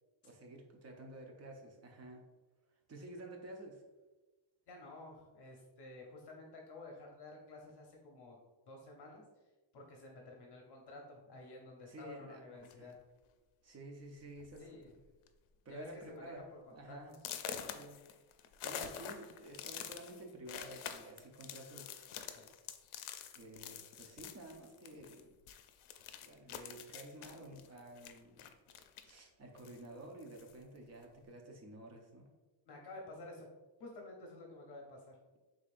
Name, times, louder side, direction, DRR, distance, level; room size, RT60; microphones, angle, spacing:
voice 1, 0.2-2.2 2.9-3.8 11.9-12.9 13.6-14.9 15.6-16.4 16.7-17.2 17.7-18.0 18.6-22.1 23.3-25.4 26.2-28.4 29.0-32.3, right 1 dB, 30° right, 1 dB, 0.6 m, -51 dB
voice 2, 4.7-8.4 8.7-9.2 9.7-13.0 14.6-14.9 15.7-16.6 16.8-17.1 22.3-22.5 32.6-33.5 33.8-35.2, left 2 dB, 55° left, 0 dB, 0.9 m, -52 dB
sound 1, 12.6-13.0 13.8-13.9 14.3-14.5 14.8-15.3 15.7-15.8 16.3-16.4 17.1-25.2 25.5-29.2 29.6-30.6, left 9 dB, 80° left, 0.5 m, -47 dB
5.2 x 3.6 x 2.5 m, 1.2 s
wide cardioid pair, 170°, 49 cm